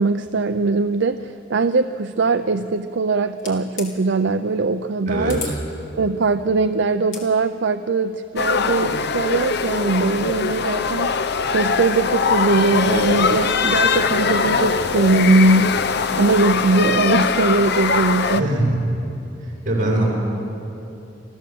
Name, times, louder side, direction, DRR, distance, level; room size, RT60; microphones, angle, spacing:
voice 1, 0.0-5.4 6.0-15.8 16.2-18.5, right 3 dB, 70° right, 9 dB, 0.6 m, -20 dB
sound 1, 3.4-3.9 5.3-5.6 7.0-7.3, left 6 dB, 90° left, 3.1 m, -33 dB
voice 2, 5.1-5.5 18.4-18.7 19.7-20.0, right 1 dB, 45° right, -4 dB, 7.3 m, -21 dB
sound 2, 8.4-18.4, left 5 dB, 60° left, 0.8 m, -21 dB
26.5 x 15.0 x 7.8 m, 2.8 s
head